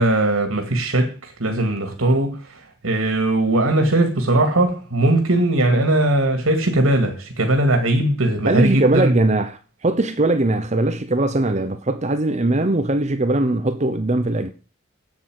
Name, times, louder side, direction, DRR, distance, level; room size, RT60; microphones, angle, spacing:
voice 1, 0.0-9.1, right 1 dB, 85° right, 2.3 m, -19 dB
voice 2, 8.5-14.5, right 2 dB, 35° right, 0.9 m, -20 dB
8.6 x 8.5 x 7.8 m
head